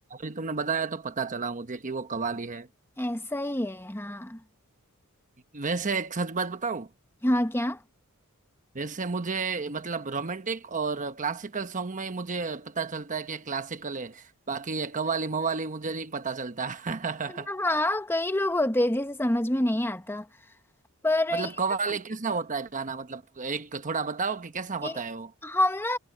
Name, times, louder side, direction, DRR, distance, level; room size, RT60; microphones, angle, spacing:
voice 1, 0.0-2.7 5.5-6.9 8.7-17.5 21.3-25.3, right 4 dB, 35° right, 1.1 m, -31 dB
voice 2, 3.0-4.4 7.2-7.8 17.3-20.3 21.0-21.5 24.8-25.0 25.4-26.0, left 1 dB, 10° left, 1.2 m, -27 dB
head